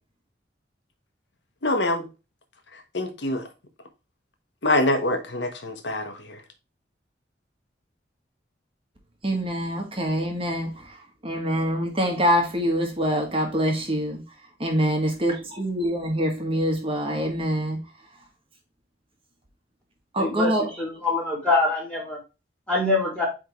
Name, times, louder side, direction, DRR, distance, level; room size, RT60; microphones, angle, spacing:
voice 1, 1.6-2.1 2.7-3.5 4.6-6.4, left 1 dB, 75° left, 1.1 m, -25 dB
voice 2, 9.2-14.2 14.6-17.8 20.1-20.8, equal, 30° right, 1.5 m, -25 dB
voice 3, 20.2-20.5 20.8-22.2 22.7-23.3, left 2 dB, 5° left, 3.4 m, -24 dB
8.8 x 3.6 x 3.1 m
head